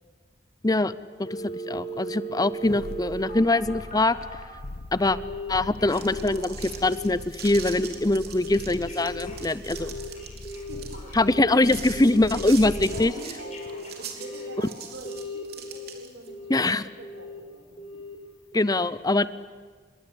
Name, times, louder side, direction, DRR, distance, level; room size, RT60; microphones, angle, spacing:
Telephone, 1.2-4.5 5.1-5.5 5.8-7.1 7.4-7.8 8.2-11.6 11.9-12.3 12.6-14.7 15.0-15.9 16.3-16.7 17.0-17.4 17.8-18.2 18.5-18.6, equal, 40° left, 5.4 m, -38 dB
voice 1, 1.7-4.2 4.9-5.2 5.5-9.9 11.2-13.1 16.5-16.9 18.5-19.3, left 2 dB, 20° left, 16 dB, 0.8 m, -23 dB
sound 1, 2.5-13.2 13.6-13.7, left 1 dB, 60° left, 1.0 m, -41 dB
sound 2, 5.7-16.3, right 7 dB, 60° right, 3.7 m, -42 dB
voice 2, 9.6-10.2 10.7-11.3 12.4-12.5 12.9-18.0, right 1 dB, 85° right, 4 dB, 5.3 m, -46 dB
26.5 x 22.5 x 9.0 m, 1.5 s
head